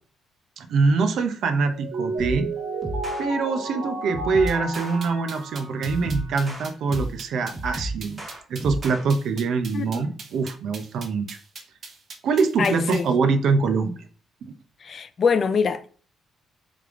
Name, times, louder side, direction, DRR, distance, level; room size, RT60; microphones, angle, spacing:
voice 1, 0.6-2.5 3.2-8.2 8.5-11.4 12.2-14.0 14.4-14.5, right 4 dB, 70° right, 0.6 m, -24 dB
Mallet percussion, 1.7-6.6, right 2 dB, 90° right, 1.8 m, -33 dB
sound 1, 2.2-2.5 2.8-3.3 4.1-5.0 5.8-7.2 7.5-9.0, right 1 dB, 25° right, 1.5 m, -32 dB
sound 2, 4.5-13.1, right 4 dB, 55° right, 1.2 m, -41 dB
voice 2, 9.7-10.1 12.6-13.0 14.8-15.9, left 5 dB, 50° left, 0.4 m, -24 dB
3.4 x 3.3 x 3.6 m
cardioid pair, 90°, 0 cm